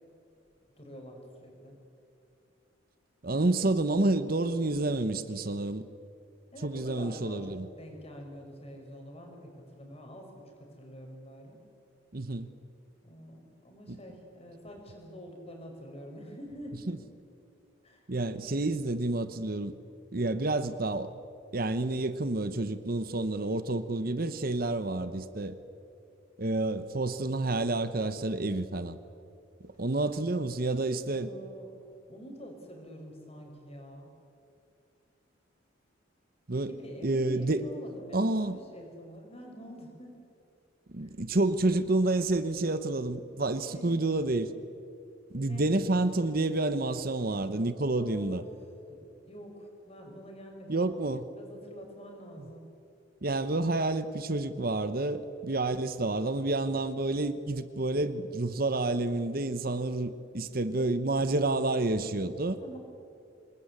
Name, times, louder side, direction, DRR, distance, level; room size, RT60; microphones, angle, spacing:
voice 1, 0.8-1.8 6.5-11.6 13.0-17.0 17.8-18.1 31.1-31.7 32.1-34.1 36.6-40.2 41.0-41.1 43.7-44.0 45.5-45.7 48.0-48.5 48.9-49.0 49.2-51.1 51.4-52.7 62.6-62.8, equal, 30° left, 2 dB, 5.8 m, -46 dB
voice 2, 3.2-5.8 6.6-7.7 12.1-12.5 13.9-14.0 16.9-17.0 18.1-19.7 20.1-21.1 21.5-25.6 26.4-29.0 29.8-31.3 36.5-36.7 37.0-37.6 38.1-38.6 40.9-44.5 45.3-48.4 50.7-51.3 52.4-52.5 53.2-62.6, right 2 dB, 50° right, 12 dB, 1.0 m, -29 dB
27.0 x 20.5 x 9.8 m, 2.5 s
head